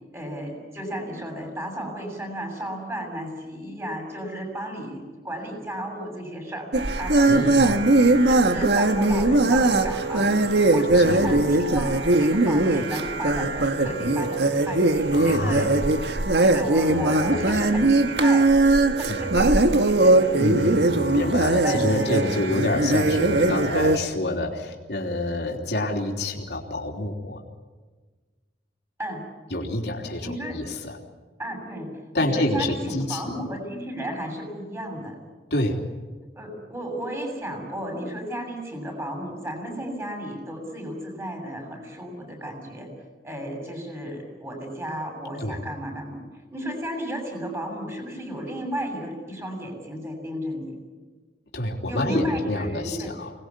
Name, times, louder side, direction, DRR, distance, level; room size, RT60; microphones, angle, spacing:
voice 1, 0.1-6.7 7.0-7.8 8.3-10.3 10.7-15.7 16.4-20.8 21.6-22.4 29.0-29.2 30.2-30.6 31.4-31.9 32.2-35.1 36.3-42.9 43.2-46.2 46.5-50.7 51.9-53.1, equal, 15° right, 3 dB, 7.4 m, -33 dB
sound 1, 6.7-24.0, right 2 dB, 75° right, 1.6 m, -20 dB
voice 2, 7.3-7.8 10.9-11.3 15.1-15.7 16.9-17.6 19.1-19.2 20.4-27.4 29.5-31.0 32.1-33.2 35.5-35.8 45.4-45.6 51.5-53.3, left 1 dB, 70° left, 1 dB, 3.4 m, -27 dB
26.0 x 20.0 x 9.8 m, 1.4 s
head